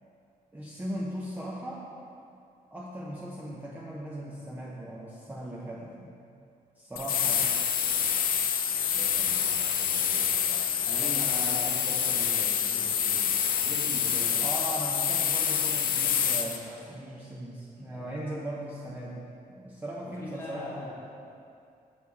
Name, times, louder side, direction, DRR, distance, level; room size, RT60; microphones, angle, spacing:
voice 1, 0.5-1.9 2.7-6.1 6.8-7.5 14.4-19.3 19.6-21.0, right 1 dB, 10° right, -5 dB, 0.6 m, -38 dB
sound 1, 7.0-16.6, left 8 dB, 65° left, 0.5 m, -27 dB
voice 2, 8.9-14.4 17.7-18.5 20.0-21.0, left 1 dB, 15° left, -5 dB, 1.3 m, -42 dB
6.9 x 6.5 x 4.1 m, 2.5 s
wide cardioid pair, 175°, 16 cm